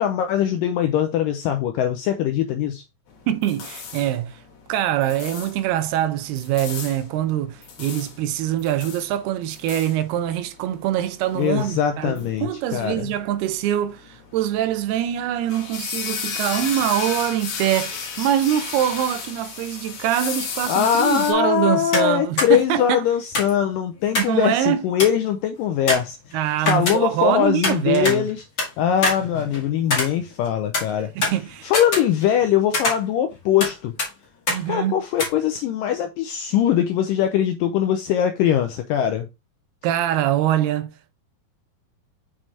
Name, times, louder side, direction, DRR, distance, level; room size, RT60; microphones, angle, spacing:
voice 1, 0.0-2.8 11.4-13.1 20.7-26.2 26.7-28.4 28.8-31.1 31.6-33.9 34.7-39.3, left 9 dB, 80° left, 2.0 m, -21 dB
sound 1, 3.1-21.3, left 6 dB, 55° left, 2.5 m, -35 dB
voice 2, 3.3-4.4 4.7-23.1 24.2-24.8 26.3-28.3 31.2-31.7 34.5-34.9 39.8-40.9, right 11 dB, 85° right, 2.6 m, -24 dB
sound 2, 21.9-22.1 22.4-22.5 23.3-24.4 24.7-24.8 25.0-25.3 25.9-27.3 27.6-28.7 29.0-30.5 30.7-32.4 32.7-33.7 34.0-34.1 34.5-34.6 35.2-35.3, left 2 dB, 30° left, 1.8 m, -25 dB
6.2 x 5.7 x 3.3 m
omnidirectional pair, 4.4 m